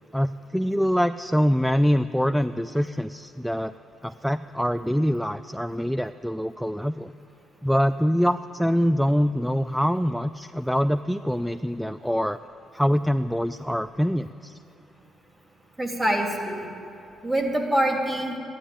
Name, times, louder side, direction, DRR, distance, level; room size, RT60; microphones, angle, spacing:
voice 1, 0.1-3.7 4.0-7.1 7.6-12.4 12.7-14.6, equal, ahead, 12 dB, 0.3 m, -24 dB
voice 2, 15.8-16.7 17.2-18.4, right 1 dB, 20° right, 2 dB, 2.6 m, -25 dB
13.0 x 10.0 x 10.0 m, 2.7 s
cardioid pair, 90°, 0 cm